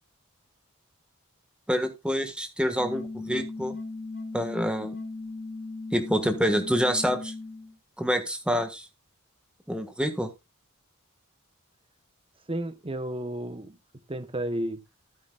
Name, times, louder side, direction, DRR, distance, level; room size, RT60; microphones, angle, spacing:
voice 1, 1.7-3.7 4.3-4.9 5.9-7.3 8.0-8.8 9.7-10.3, equal, 5° right, 1.6 m, -27 dB
sound 1, 2.8-7.7, left 3 dB, 55° left, 3.8 m, -37 dB
voice 2, 12.5-13.8 14.1-14.8, right 1 dB, 25° right, 1.0 m, -32 dB
13.5 x 8.6 x 2.4 m
head